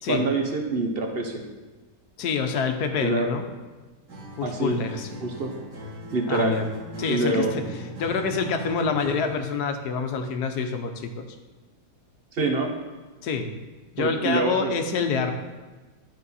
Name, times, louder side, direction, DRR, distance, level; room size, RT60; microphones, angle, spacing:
voice 1, 0.1-1.4 3.0-3.3 4.4-4.8 5.2-5.5 6.1-6.6 7.1-7.5 12.3-12.7 14.0-14.7, right 3 dB, 45° right, 3 dB, 0.8 m, -25 dB
voice 2, 2.2-3.4 4.4-5.1 6.3-6.7 7.0-11.2 13.2-13.5 13.9-15.3, left 5 dB, 75° left, 6 dB, 1.3 m, -27 dB
Acoustic guitar, 4.1-9.5, equal, 85° right, 2.3 m, -38 dB
11.5 x 4.4 x 4.1 m, 1.3 s
omnidirectional pair, 1.8 m